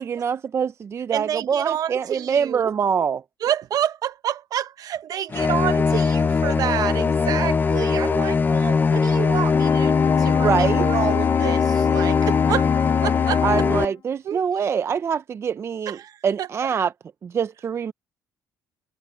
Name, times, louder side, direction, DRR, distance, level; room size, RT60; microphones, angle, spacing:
voice 1, 0.0-3.2 10.4-10.9 13.4-16.0 16.2-16.9 17.2-17.9, right 7 dB, 40° right, 0.5 m, -24 dB
voice 2, 1.1-2.7 3.4-13.4 14.2-14.4 15.9-16.5, right 10 dB, 60° right, 1.0 m, -28 dB
sound 1, 5.3-13.8, left 5 dB, 25° left, 0.7 m, -21 dB
Brass instrument, 9.5-13.9, left 9 dB, 60° left, 2.8 m, -25 dB
cardioid pair, 105°, 7 cm